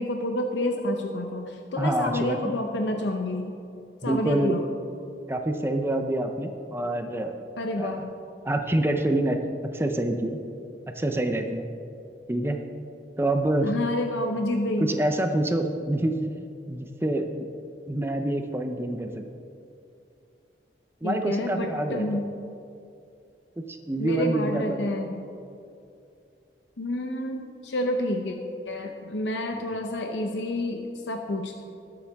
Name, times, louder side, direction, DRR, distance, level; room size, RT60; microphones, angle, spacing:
voice 1, 0.0-3.6 4.0-4.6 7.6-8.1 13.6-15.0 21.0-22.3 24.0-25.3 26.8-28.4 28.7-31.6, left 1 dB, 85° left, 3 dB, 0.7 m, -29 dB
voice 2, 1.8-2.5 4.0-4.6 5.3-7.4 7.8-8.0 8.4-9.4 9.7-10.4 11.0-11.7 12.3-12.6 13.2-13.7 14.8-16.1 16.7-17.4 17.9-19.3 21.0-22.2 23.7-24.9 29.5-29.6, right 1 dB, 15° right, 5 dB, 0.6 m, -26 dB
19.5 x 7.1 x 3.5 m, 2.6 s
head